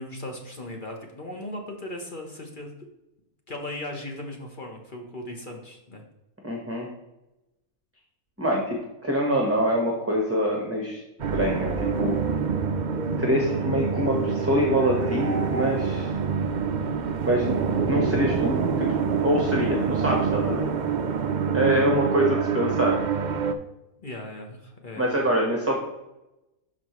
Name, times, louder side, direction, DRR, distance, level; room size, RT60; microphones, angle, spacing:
voice 1, 0.0-2.7 3.5-6.0 24.0-25.3, left 1 dB, 40° left, 1 dB, 1.2 m, -37 dB
voice 2, 6.4-6.9 8.4-8.8 9.0-11.0 11.3-12.2 13.2-16.1 17.2-17.6 17.9-18.9 19.2-20.6 21.5-23.0 25.0-25.8, equal, 10° right, -1 dB, 1.1 m, -25 dB
sound 1, 11.2-23.5, right 6 dB, 60° right, 0.4 m, -26 dB
12.5 x 4.3 x 3.1 m, 0.93 s
omnidirectional pair, 1.5 m